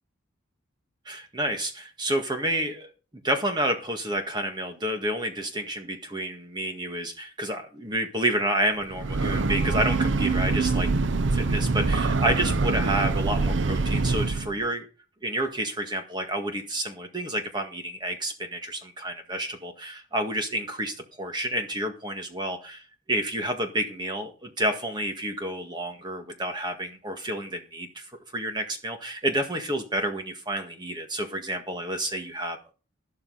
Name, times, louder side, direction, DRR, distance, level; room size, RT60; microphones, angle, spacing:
voice 1, 1.1-2.9 3.2-11.0 11.3-14.8 15.2-28.1 28.3-32.7, right 1 dB, 20° right, 4 dB, 1.8 m, -29 dB
Breathing / Train, 8.8-14.6, right 3 dB, 65° right, 0.6 m, -24 dB
12.5 x 12.5 x 4.1 m, 0.35 s
head